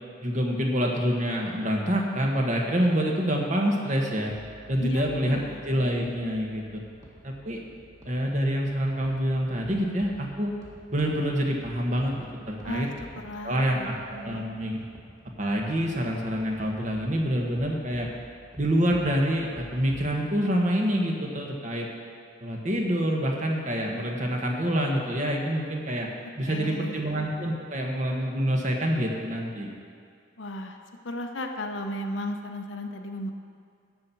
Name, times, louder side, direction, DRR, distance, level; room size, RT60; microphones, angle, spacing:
voice 1, 0.2-4.3 4.7-5.4 5.7-6.8 7.2-7.6 8.0-10.5 10.9-12.9 13.4-14.8 15.4-18.1 18.6-21.9 22.4-26.1 26.4-29.7, equal, 40° right, 0 dB, 1.3 m, -26 dB
sound 1, 4.3-20.1, equal, 20° right, 1.7 m, -50 dB
voice 2, 4.8-5.6 12.6-14.4 26.2-27.0 30.4-30.8 31.0-33.3, left 1 dB, 80° left, 4 dB, 0.9 m, -35 dB
12.5 x 4.4 x 8.4 m, 2.3 s
head